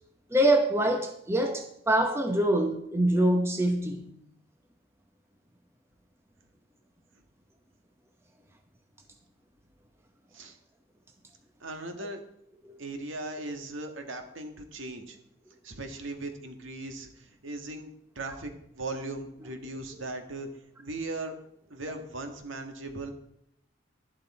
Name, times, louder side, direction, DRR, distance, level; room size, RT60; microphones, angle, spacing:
voice 1, 0.3-4.1 12.6-12.7, right 1 dB, 15° right, 1.0 m, -25 dB
voice 2, 11.6-12.2 12.8-15.2 15.6-17.9 18.1-20.5 20.8-21.3 21.7-23.1, right 2 dB, 75° right, 1.8 m, -38 dB
11.5 x 11.0 x 4.3 m
head